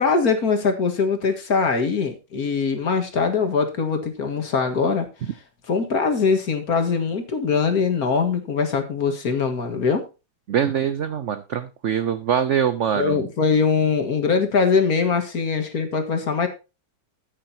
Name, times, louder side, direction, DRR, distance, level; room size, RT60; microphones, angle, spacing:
voice 1, 0.0-5.1 5.7-10.1 12.9-16.5, left 5 dB, 50° left, 6 dB, 2.0 m, -22 dB
voice 2, 10.5-13.3, right 8 dB, 75° right, 13 dB, 0.6 m, -23 dB
13.5 x 8.8 x 2.8 m, 0.28 s
omnidirectional pair, 2.1 m